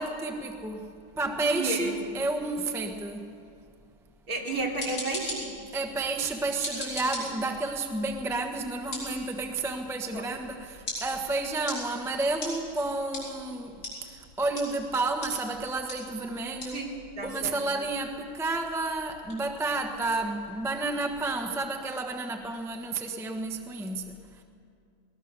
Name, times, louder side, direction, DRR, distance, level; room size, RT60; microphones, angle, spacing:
voice 1, 0.0-3.3 5.7-16.9 17.2-24.4, right 2 dB, ahead, 3 dB, 0.8 m, -31 dB
voice 2, 1.4-2.0 4.3-5.5 10.1-10.3 16.7-17.6, right 2 dB, 45° right, -2 dB, 3.6 m, -32 dB
sound 1, 4.5-21.3, left 1 dB, 80° left, 7.3 m, -42 dB
20.0 x 20.0 x 6.7 m, 2.3 s
omnidirectional pair, 2.2 m